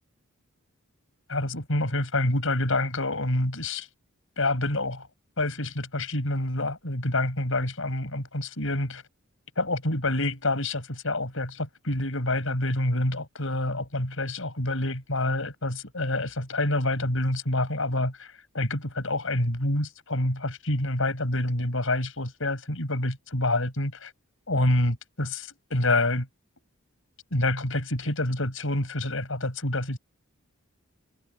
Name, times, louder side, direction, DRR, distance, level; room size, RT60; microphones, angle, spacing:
voice 1, 1.3-3.9 4.4-5.1 5.4-9.0 9.6-24.1 24.5-26.3 27.3-30.0, left 1 dB, 65° left, 6.9 m, -27 dB
head